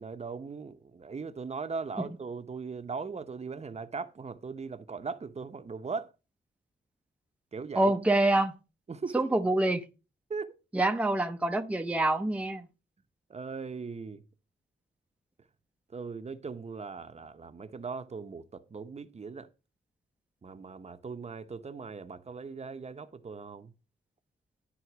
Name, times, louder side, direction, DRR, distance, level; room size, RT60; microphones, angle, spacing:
voice 1, 0.0-6.1 7.5-7.9 8.9-9.4 10.3-10.5 13.3-14.2 15.9-19.5 20.4-23.7, right 5 dB, 35° right, 0.9 m, -39 dB
voice 2, 7.7-8.5 9.1-9.8 10.7-12.6, right 2 dB, 5° right, 0.7 m, -26 dB
11.0 x 3.8 x 6.0 m
wide cardioid pair, 115°, 19 cm